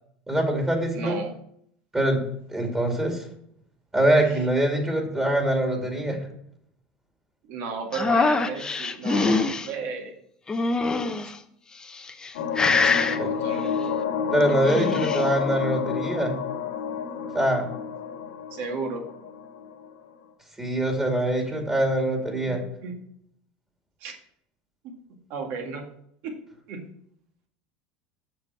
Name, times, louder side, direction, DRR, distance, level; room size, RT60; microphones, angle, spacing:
voice 1, 0.3-1.2 1.9-2.2 2.5-3.3 3.9-6.2 13.2-13.3 14.3-16.4 17.3-17.7 20.6-22.6, right 1 dB, 15° right, 2 dB, 2.4 m, -23 dB
voice 2, 0.9-1.3 7.5-10.1 11.2-11.3 12.8-14.0 18.5-19.1 22.8-22.9 24.0-24.1 24.8-24.9 25.3-25.8 26.2-26.4 26.7-26.8, right 4 dB, 60° right, 3 dB, 1.9 m, -34 dB
sound 1, 7.9-9.7 10.5-11.3 12.0-12.3 12.6-13.2 14.5-15.2, left 3 dB, 20° left, 0.7 m, -24 dB
sound 2, 12.3-19.9, left 7 dB, 90° left, 1.7 m, -30 dB
7.4 x 6.1 x 4.8 m, 0.69 s
supercardioid pair, 100°, 4 cm